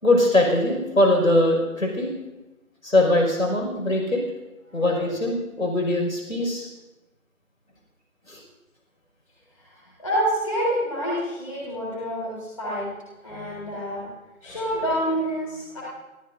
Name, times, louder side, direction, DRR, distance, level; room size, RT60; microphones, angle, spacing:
voice 1, 0.0-2.1 2.8-4.2 4.7-6.7 8.3-8.4 13.4-13.6 14.4-14.6, left 1 dB, 65° left, 1 dB, 5.8 m, -22 dB
voice 2, 10.0-12.9 13.2-14.1 14.4-15.8, equal, 25° left, -7 dB, 3.8 m, -27 dB
26.0 x 14.5 x 2.7 m, 1.0 s
figure-of-eight pair, 175°, 43 cm